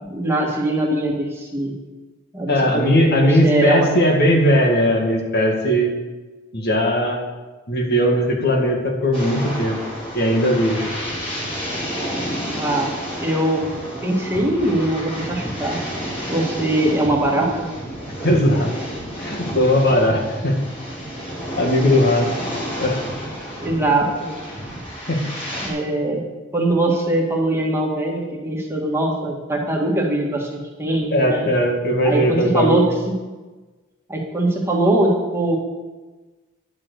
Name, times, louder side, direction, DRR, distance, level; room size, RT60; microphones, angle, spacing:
voice 1, 0.1-1.7 2.3-3.9 12.5-12.9 13.2-13.6 14.0-15.8 16.3-17.7 23.6-24.3 25.6-26.2 26.5-31.5 32.0-32.8 34.1-35.6, right 1 dB, 10° right, -2 dB, 1.9 m, -21 dB
voice 2, 2.5-5.9 6.5-7.2 7.7-9.8 10.1-10.8 18.2-18.7 19.2-20.6 21.6-22.3 22.8-23.0 25.1-25.2 31.1-32.9, equal, 55° left, 1 dB, 2.0 m, -18 dB
sound 1, 9.1-25.7, equal, 30° left, 4.3 m, -30 dB
10.5 x 7.2 x 6.7 m, 1.2 s
head